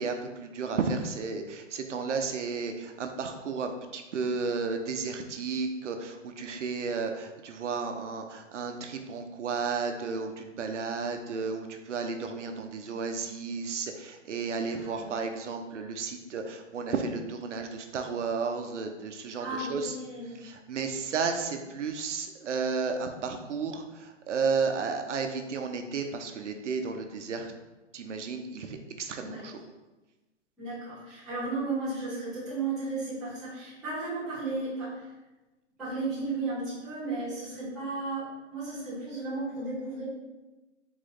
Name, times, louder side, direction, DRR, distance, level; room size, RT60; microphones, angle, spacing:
voice 1, 0.0-19.9 20.3-27.5 27.9-29.6, right 5 dB, 70° right, 5 dB, 0.7 m, -33 dB
voice 2, 14.7-15.2 19.4-20.4 29.2-29.5 30.6-35.0 35.8-40.0, right 3 dB, ahead, -13 dB, 0.4 m, -34 dB
3.9 x 3.1 x 3.8 m, 1.1 s
hypercardioid pair, 150°, 37 cm